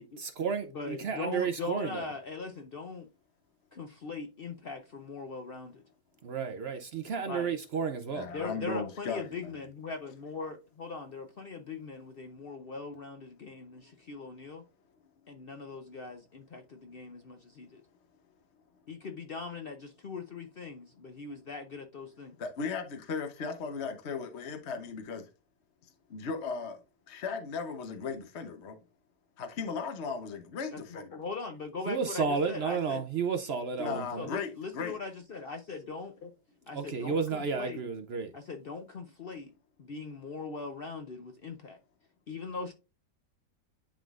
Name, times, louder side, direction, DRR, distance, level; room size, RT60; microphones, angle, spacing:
voice 1, 0.2-2.1 6.2-8.3 31.9-34.3 36.7-38.3, right 5 dB, 65° right, 0.6 m, -32 dB
voice 2, 0.7-3.1 3.7-5.8 7.3-7.5 8.3-14.6 15.3-17.8 18.9-22.4 30.7-33.0 33.8-36.3 36.7-37.8 38.3-39.5 39.8-41.8 42.3-42.7, left 4 dB, 75° left, 0.5 m, -40 dB
voice 3, 8.1-9.4 22.4-25.3 26.1-26.8 27.1-28.8 29.4-31.2 33.8-34.9, left 5 dB, 45° left, 1.0 m, -36 dB
10.5 x 3.7 x 2.4 m
omnidirectional pair, 1.8 m